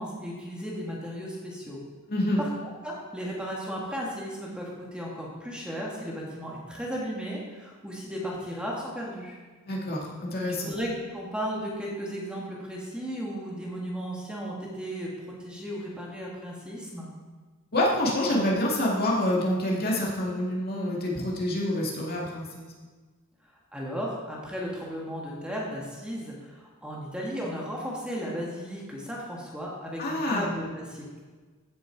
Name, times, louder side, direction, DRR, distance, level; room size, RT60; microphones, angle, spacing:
voice 1, 0.0-1.8 2.4-9.4 10.5-15.1 15.4-17.1 23.7-31.2, equal, 5° right, -4 dB, 1.7 m, -35 dB
voice 2, 2.1-2.4 9.7-10.7 17.7-22.7 30.0-30.5, left 1 dB, 45° left, -3 dB, 2.2 m, -27 dB
15.0 x 6.8 x 4.6 m, 1.4 s
head